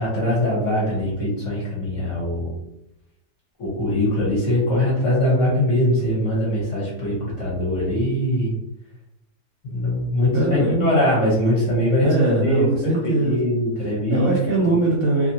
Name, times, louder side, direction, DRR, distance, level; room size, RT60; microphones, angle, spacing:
voice 1, 0.0-2.5 3.6-8.5 9.7-12.1 12.4-14.3, left 1 dB, 50° left, -6 dB, 1.2 m, -22 dB
voice 2, 10.3-10.9 12.0-13.4 14.1-15.3, right 2 dB, 65° right, -2 dB, 0.9 m, -21 dB
2.8 x 2.5 x 2.7 m, 0.88 s
omnidirectional pair, 1.9 m